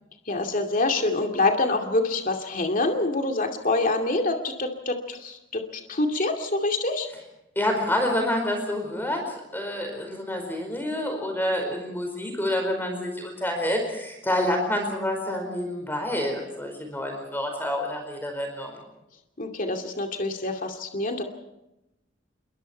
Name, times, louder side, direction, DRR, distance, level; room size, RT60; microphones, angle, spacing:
voice 1, 0.3-7.1 19.4-21.2, left 2 dB, 45° left, 4 dB, 2.5 m, -26 dB
voice 2, 7.5-18.8, left 1 dB, 10° left, 4 dB, 4.8 m, -28 dB
27.5 x 23.0 x 4.5 m, 0.91 s
head